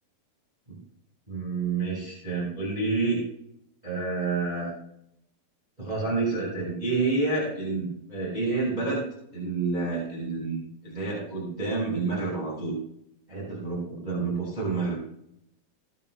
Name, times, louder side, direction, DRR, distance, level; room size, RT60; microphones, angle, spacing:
voice 1, 1.3-3.2 3.8-4.7 5.8-9.0 9.3-12.8 13.3-15.0, right 3 dB, 10° right, -4 dB, 4.4 m, -29 dB
20.0 x 11.5 x 2.2 m, 0.73 s
omnidirectional pair, 4.7 m